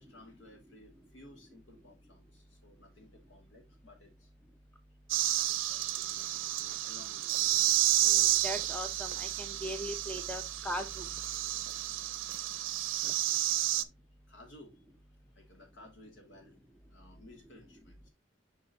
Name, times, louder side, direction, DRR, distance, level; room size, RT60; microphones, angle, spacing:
voice 1, 0.0-4.3 5.4-7.7 12.3-12.6 12.9-13.9 14.3-14.8 15.4-16.6 16.9-18.1, left 1 dB, 75° left, 2.5 m, -57 dB
sound 1, 5.1-13.8, right 14 dB, 90° right, 0.5 m, -31 dB
voice 2, 8.0-11.1, equal, 5° left, 0.8 m, -39 dB
7.0 x 5.4 x 2.9 m
head